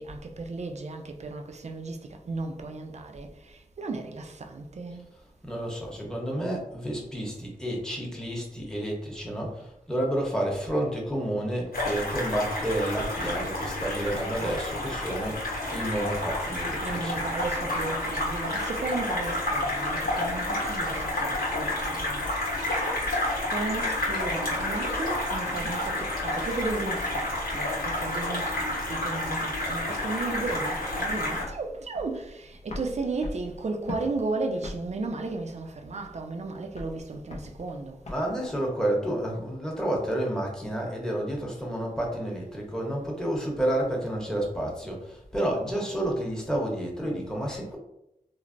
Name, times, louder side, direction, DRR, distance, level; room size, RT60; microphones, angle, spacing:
voice 1, 0.0-5.1 16.8-22.5 23.0-38.0, right 3 dB, 50° right, 0.4 m, -34 dB
voice 2, 5.4-17.2 38.0-47.8, right 1 dB, 5° left, 0.9 m, -30 dB
sound 1, 11.7-31.4, left 1 dB, 80° left, 1.0 m, -30 dB
sound 2, 30.9-38.4, left 2 dB, 50° left, 0.4 m, -42 dB
3.1 x 2.0 x 2.5 m
wide cardioid pair, 60°, 15 cm